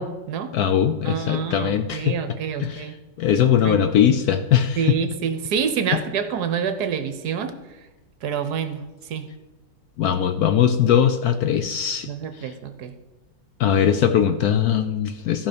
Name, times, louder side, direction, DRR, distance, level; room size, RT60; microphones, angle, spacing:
voice 1, 0.0-0.5 1.0-3.0 3.6-3.8 4.8-7.5 8.2-9.3 12.1-12.9, right 7 dB, 70° right, 10 dB, 1.2 m, -27 dB
voice 2, 0.5-2.2 2.6-2.9 3.2-4.9 10.0-12.1 12.4-12.5 13.6-15.5, left 9 dB, 70° left, 8 dB, 1.0 m, -20 dB
14.5 x 5.4 x 5.1 m, 1.1 s
omnidirectional pair, 2.0 m